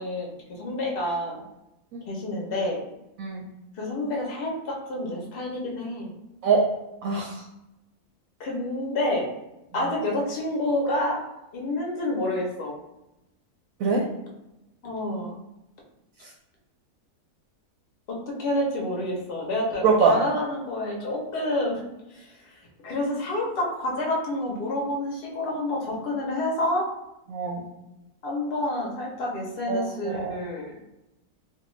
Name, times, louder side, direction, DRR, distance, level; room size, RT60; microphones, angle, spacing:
voice 1, 0.0-1.4 2.1-2.8 3.8-6.1 8.4-9.3 9.7-11.2 11.5-12.7 14.8-15.4 18.1-21.8 22.1-22.3 22.8-26.9 28.2-30.7, left 1 dB, 50° left, -1 dB, 0.7 m, -28 dB
voice 2, 7.0-7.4 13.8-14.0 19.8-20.2 27.3-27.7 29.7-30.3, right 5 dB, 70° right, 0 dB, 0.9 m, -23 dB
2.6 x 2.3 x 3.0 m, 0.92 s
omnidirectional pair, 1.7 m